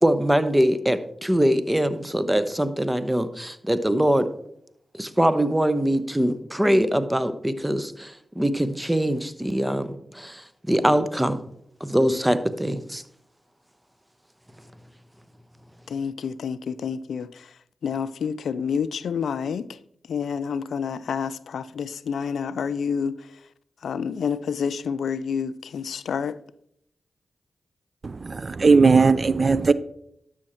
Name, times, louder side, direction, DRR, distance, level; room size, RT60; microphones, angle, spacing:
voice 1, 0.0-4.3 4.9-11.4 11.8-13.0, equal, 10° right, 0.9 m, -23 dB
voice 2, 15.9-17.5 17.8-19.7 20.1-23.2 23.8-26.4, left 6 dB, 80° left, 0.4 m, -28 dB
voice 3, 28.0-29.7, right 4 dB, 50° right, 0.4 m, -18 dB
12.0 x 6.3 x 4.4 m
cardioid pair, 45°, 0 cm